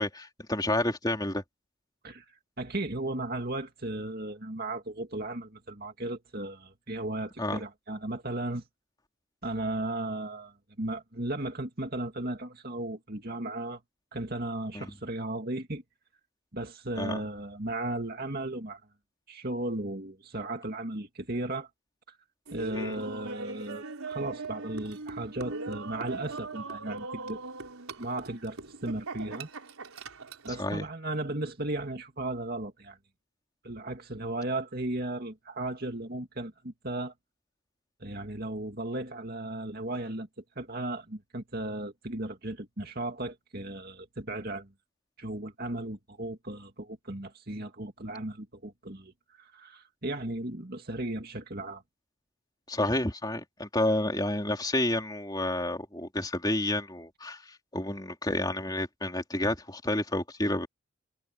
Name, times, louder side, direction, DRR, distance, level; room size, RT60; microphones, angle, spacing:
voice 1, 0.0-1.4 7.4-7.6 14.7-14.9 17.0-17.2 22.8-23.0 30.6-30.8 52.7-57.4 57.7-60.7, left 1 dB, 20° left, 3.5 m, -30 dB
voice 2, 2.6-8.6 9.4-13.8 14.1-15.8 16.5-18.8 19.3-21.7 22.1-22.2 22.5-27.4 28.0-29.5 30.4-33.0 33.6-37.1 38.0-40.3 40.6-44.7 45.2-51.8, right 2 dB, 45° right, 2.4 m, -35 dB
Laughter, 22.5-30.6, right 3 dB, 85° right, 4.1 m, -40 dB
head